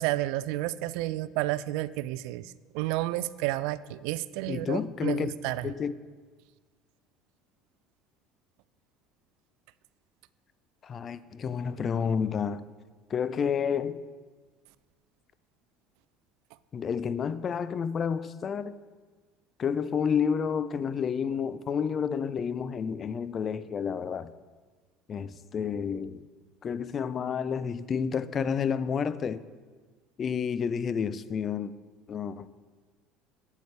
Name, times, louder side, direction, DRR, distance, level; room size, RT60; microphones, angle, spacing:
voice 1, 0.0-5.7, right 16 dB, 70° right, 17 dB, 0.3 m, -31 dB
voice 2, 4.5-5.3 5.6-5.9 10.8-12.6 13.1-14.0 16.7-18.7 19.6-24.3 25.1-26.2 26.6-29.4 30.2-31.7 32.1-32.5, left 7 dB, 40° left, 15 dB, 0.5 m, -30 dB
12.0 x 8.4 x 3.3 m, 1.4 s
hypercardioid pair, 80°, 0 cm